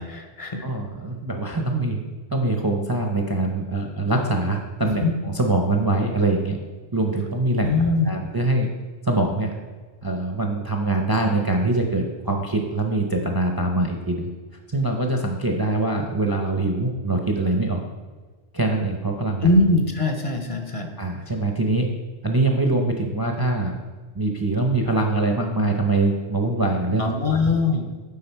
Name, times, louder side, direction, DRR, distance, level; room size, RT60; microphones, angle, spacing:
voice 1, 0.0-0.7 5.0-5.1 7.6-8.1 19.4-20.9 27.0-27.9, left 3 dB, 40° left, 4 dB, 0.6 m, -21 dB
voice 2, 0.6-2.0 2.3-6.6 6.9-7.7 8.0-8.7 9.0-9.6 10.0-14.3 14.7-17.8 18.5-19.5 21.0-21.9 22.2-23.8 24.1-27.4, right 2 dB, 25° right, 2 dB, 0.5 m, -23 dB
9.4 x 3.7 x 4.5 m, 1.4 s
omnidirectional pair, 1.1 m